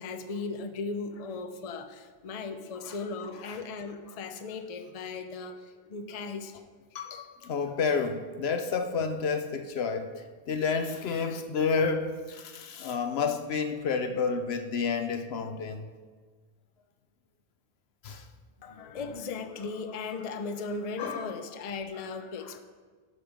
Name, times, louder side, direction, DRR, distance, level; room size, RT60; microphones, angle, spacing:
voice 1, 0.0-6.6 7.0-7.2 18.6-22.6, left 4 dB, 45° left, 8 dB, 0.6 m, -37 dB
voice 2, 6.9-15.9 18.0-18.2 21.0-21.3, left 5 dB, 75° left, 7 dB, 0.9 m, -30 dB
11.0 x 5.3 x 5.2 m, 1.5 s
omnidirectional pair, 1.1 m